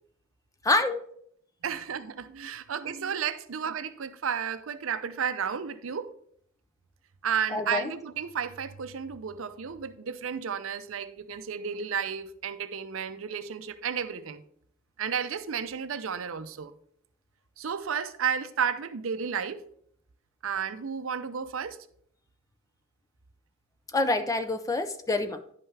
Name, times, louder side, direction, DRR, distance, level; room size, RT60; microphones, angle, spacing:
voice 1, 0.7-1.0 7.5-7.9 23.9-25.4, left 2 dB, 15° left, 0.5 m, -26 dB
voice 2, 1.6-6.1 7.2-14.4 15.0-16.7 17.6-19.6 20.4-21.8, right 7 dB, 65° right, 0.6 m, -32 dB
10.5 x 5.6 x 3.3 m
head